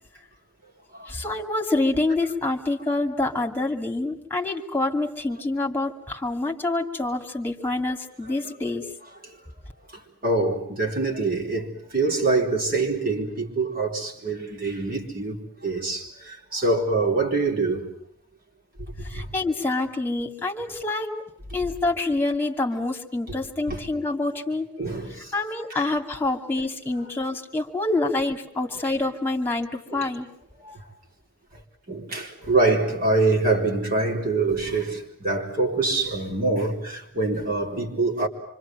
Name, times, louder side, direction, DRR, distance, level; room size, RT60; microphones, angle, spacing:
voice 1, 1.1-8.8 19.1-21.1 21.5-24.7 25.3-30.3, left 2 dB, 10° left, 2.4 m, -26 dB
voice 2, 10.2-15.4 15.6-17.8 19.2-19.3 23.7-23.8 24.8-25.1 25.7-25.8 29.9-30.1 30.6-30.8 31.9-38.3, right 3 dB, 40° right, 4.2 m, -25 dB
26.5 x 25.5 x 7.7 m
head